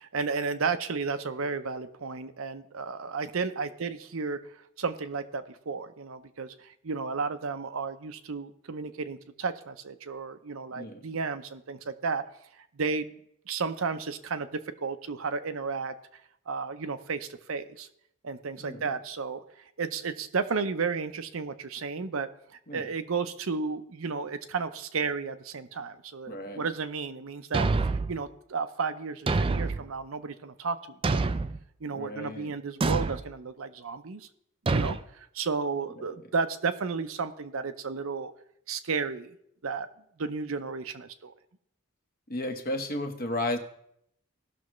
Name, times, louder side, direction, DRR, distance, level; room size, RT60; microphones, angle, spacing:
voice 1, 0.0-4.4 4.8-12.2 12.6-13.1 13.5-15.9 16.5-17.9 18.2-19.4 19.8-22.3 22.7-27.7 28.1-31.4 31.8-34.3 34.7-38.3 38.7-39.3 39.6-39.9 40.2-41.3, right 4 dB, 70° right, 10 dB, 0.7 m, -33 dB
voice 2, 18.6-18.9 22.7-22.9 26.3-26.6 31.9-32.5 36.0-36.2 42.3-43.6, left 1 dB, 45° left, 6 dB, 1.1 m, -34 dB
Thump thud, 27.5-28.2 29.3-29.8 31.0-31.6 32.8-33.2 34.7-35.0, right 3 dB, 25° right, 0.3 m, -26 dB
17.5 x 6.2 x 3.1 m, 0.73 s
head